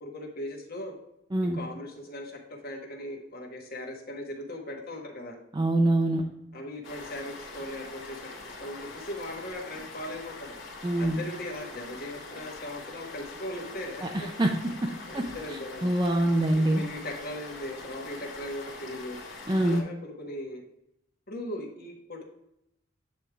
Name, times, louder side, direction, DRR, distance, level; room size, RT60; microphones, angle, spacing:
voice 1, 0.0-0.9 1.5-5.4 6.5-10.5 11.0-14.3 15.1-15.9 16.5-19.2 19.6-20.6 21.3-22.2, left 1 dB, 50° left, 0 dB, 1.5 m, -39 dB
voice 2, 5.5-6.2 10.8-11.2 14.0-14.5 14.8-15.2 15.8-16.8 19.5-19.8, right 1 dB, 20° right, 1 dB, 0.5 m, -25 dB
sound 1, 6.8-19.8, left 3 dB, 70° left, 2.0 m, -43 dB
9.0 x 3.5 x 4.8 m, 0.82 s
head